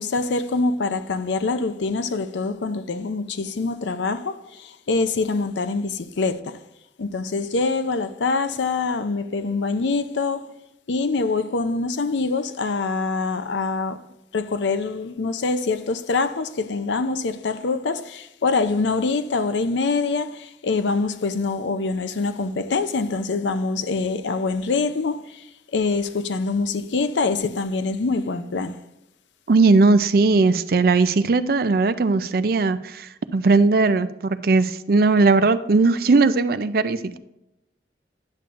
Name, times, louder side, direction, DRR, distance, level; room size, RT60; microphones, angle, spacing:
voice 1, 0.0-6.6 7.0-10.5 10.9-14.0 14.3-25.4 25.7-28.8, left 3 dB, 90° left, 0.5 m, -25 dB
voice 2, 29.5-37.2, right 3 dB, 55° right, 0.4 m, -18 dB
10.0 x 6.9 x 2.5 m
head